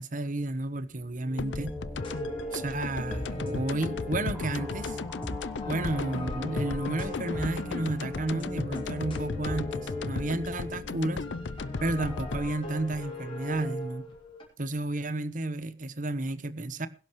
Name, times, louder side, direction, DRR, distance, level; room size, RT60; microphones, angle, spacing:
voice 1, 0.0-1.8 2.5-5.0 5.7-11.3 11.8-14.1 14.6-16.9, right 2 dB, 45° right, 1.1 m, -32 dB
sound 1, 0.9-12.5, left 2 dB, 5° left, 3.5 m, -39 dB
sound 2, 1.4-14.2, left 3 dB, 80° left, 0.6 m, -37 dB
sound 3, 2.0-10.7 11.2-14.4, left 1 dB, 30° left, 5.3 m, -41 dB
21.5 x 11.5 x 3.2 m
head